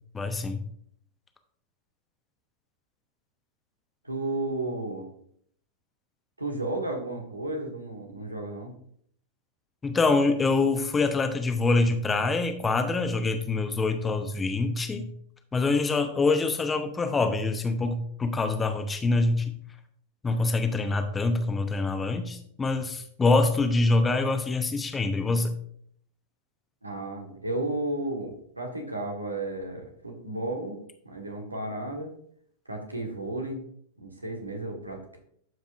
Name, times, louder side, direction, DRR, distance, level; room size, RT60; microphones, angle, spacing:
voice 1, 0.1-0.6 9.8-15.1 15.5-19.5 20.2-25.5, left 3 dB, 15° left, 7 dB, 0.9 m, -25 dB
voice 2, 4.0-5.1 6.4-8.7 26.8-30.8 31.0-32.1 32.6-33.6 34.0-35.2, right 2 dB, 85° right, 2 dB, 1.6 m, -33 dB
12.0 x 5.3 x 2.6 m, 0.64 s
figure-of-eight pair, 95°, 0 cm